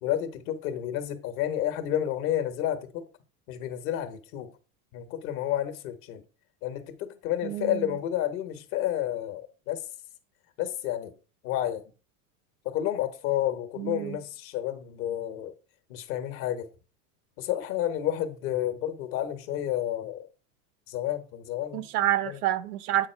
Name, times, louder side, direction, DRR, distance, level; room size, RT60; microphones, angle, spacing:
voice 1, 0.0-3.0 3.5-4.5 4.9-6.2 6.6-9.8 10.6-11.1 11.4-11.8 12.6-15.5 15.9-16.7 17.4-20.3 20.9-21.8 22.2-22.4, left 11 dB, 60° left, 1.3 m, -30 dB
voice 2, 7.4-7.9 13.8-14.2 21.7-23.1, right 13 dB, 75° right, 0.9 m, -28 dB
8.7 x 4.2 x 4.5 m
hypercardioid pair, 110°, 46 cm